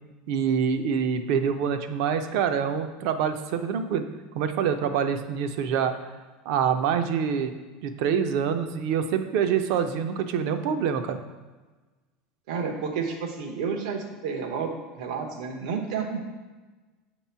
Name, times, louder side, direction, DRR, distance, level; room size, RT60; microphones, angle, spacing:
voice 1, 0.3-4.1 4.3-5.9 6.5-7.5 7.8-11.2, right 7 dB, 55° right, 8 dB, 0.4 m, -26 dB
voice 2, 12.5-16.2, right 5 dB, 85° right, 3 dB, 0.9 m, -31 dB
6.6 x 2.9 x 5.6 m, 1.3 s
cardioid pair, 175°, 4 cm